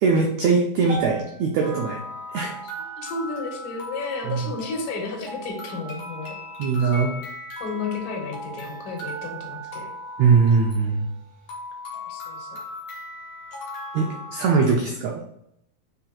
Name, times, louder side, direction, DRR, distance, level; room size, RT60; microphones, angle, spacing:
voice 1, 0.0-2.0 2.3-2.5 4.3-4.4 6.6-7.1 10.2-11.1 13.9-15.2, right 5 dB, 85° right, 0 dB, 1.5 m, -21 dB
sound 1, 0.9-5.1, right 5 dB, 60° right, 1.6 m, -41 dB
sound 2, 1.6-14.7, left 1 dB, 45° left, 1.4 m, -38 dB
voice 2, 3.0-6.4 6.8-6.9 7.6-9.9 12.1-12.6 14.3-14.4, left 3 dB, 80° left, 1 dB, 2.5 m, -32 dB
5.7 x 3.9 x 2.3 m, 0.75 s
omnidirectional pair, 3.8 m